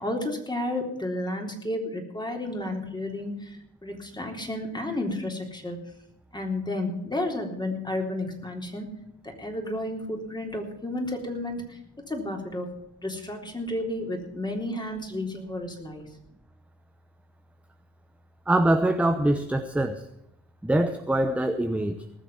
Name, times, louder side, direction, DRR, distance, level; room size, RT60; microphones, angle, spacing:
voice 1, 0.0-3.6 3.8-5.8 6.3-8.9 9.2-11.8 12.1-12.7 13.0-16.1, left 1 dB, 15° left, 2 dB, 3.7 m, -32 dB
voice 2, 18.5-20.1 20.6-22.0, right 1 dB, 5° right, 8 dB, 0.8 m, -24 dB
19.5 x 6.8 x 7.3 m, 0.80 s
cardioid pair, 90°, 30 cm